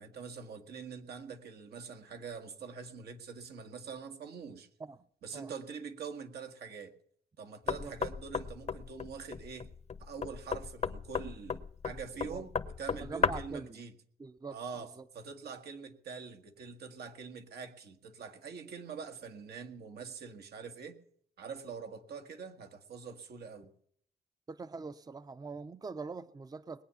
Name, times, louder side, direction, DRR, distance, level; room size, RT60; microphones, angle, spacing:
voice 1, 0.0-4.7 5.2-6.9 7.4-9.7 10.0-13.9 14.5-21.0 21.4-23.7, right 5 dB, 85° right, 1.7 m, -44 dB
Knock, 7.7-13.6, left 6 dB, 40° left, 0.8 m, -35 dB
voice 2, 13.0-13.8 14.2-14.6 15.0-15.1 24.5-26.8, right 4 dB, 25° right, 0.6 m, -43 dB
20.0 x 8.9 x 7.0 m
cardioid pair, 80°, 16 cm